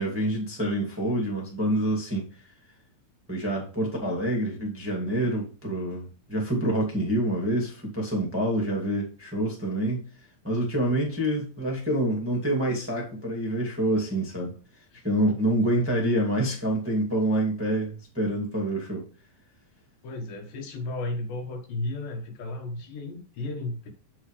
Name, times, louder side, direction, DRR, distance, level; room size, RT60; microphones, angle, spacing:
voice 1, 0.0-2.5 3.3-10.0 10.4-14.5 15.0-19.0, right 1 dB, 5° right, 1.6 m, -27 dB
voice 2, 20.0-23.9, left 2 dB, 75° left, 3.1 m, -34 dB
7.9 x 7.4 x 3.3 m
omnidirectional pair, 4.1 m